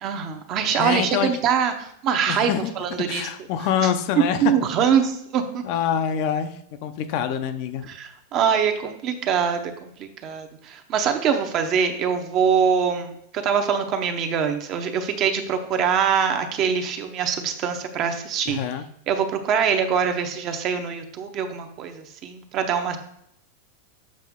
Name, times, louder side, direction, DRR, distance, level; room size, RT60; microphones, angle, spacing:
voice 1, 0.0-3.2 4.2-5.6 7.9-18.6 19.1-23.0, right 7 dB, 30° right, 6 dB, 0.8 m, -23 dB
voice 2, 0.8-1.4 2.3-2.7 3.1-4.5 4.8-4.9 5.6-7.9 18.5-18.8, left 9 dB, 45° left, 9 dB, 0.5 m, -26 dB
7.4 x 5.0 x 3.6 m, 0.72 s
supercardioid pair, 160°, 0 cm